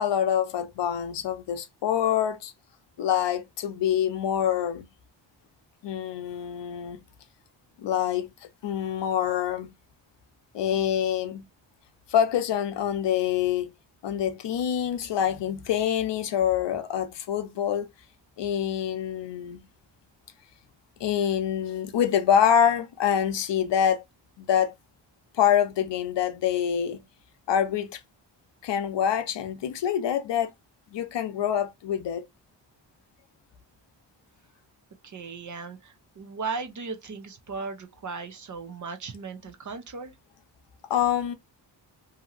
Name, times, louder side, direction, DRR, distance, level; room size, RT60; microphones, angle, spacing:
voice 1, 0.0-2.5 3.0-4.9 5.8-7.0 7.8-8.3 8.6-9.7 10.5-11.4 12.1-13.7 14.0-17.9 18.4-19.6 21.0-24.0 24.4-24.7 25.3-27.0 27.5-28.0 28.6-30.5 30.9-32.2 40.9-41.3, left 9 dB, 80° left, 0.7 m, -25 dB
voice 2, 35.0-40.1, right 4 dB, 45° right, 0.7 m, -37 dB
2.8 x 2.8 x 2.5 m
wide cardioid pair, 110°, 42 cm